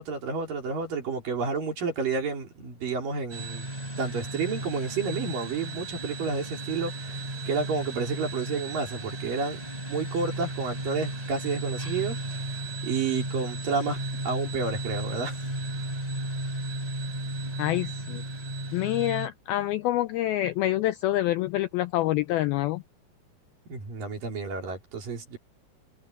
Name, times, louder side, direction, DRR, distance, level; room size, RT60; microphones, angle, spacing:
voice 1, 0.0-3.7 4.0-9.6 9.9-12.2 12.8-14.0 14.2-15.4 23.7-25.4, right 4 dB, 50° right, 5.4 m, -30 dB
sound 1, 3.3-19.3, right 1 dB, 10° right, 3.9 m, -34 dB
voice 2, 17.6-18.2 18.7-22.8, left 15 dB, 85° left, 2.1 m, -26 dB
omnidirectional pair, 5.1 m